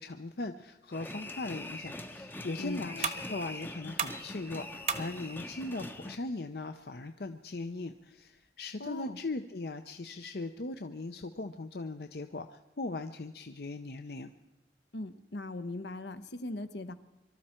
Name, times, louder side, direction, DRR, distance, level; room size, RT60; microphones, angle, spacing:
voice 1, 0.0-14.3, left 2 dB, 60° left, 7 dB, 0.7 m, -39 dB
sound 1, 0.9-6.2, left 1 dB, 10° left, 0.7 m, -43 dB
sound 2, 2.2-8.5, right 6 dB, 40° right, 0.9 m, -42 dB
voice 2, 2.6-3.1 8.8-9.2 14.9-16.9, left 2 dB, 80° left, 9 dB, 1.0 m, -39 dB
23.5 x 13.0 x 4.4 m, 1.1 s
head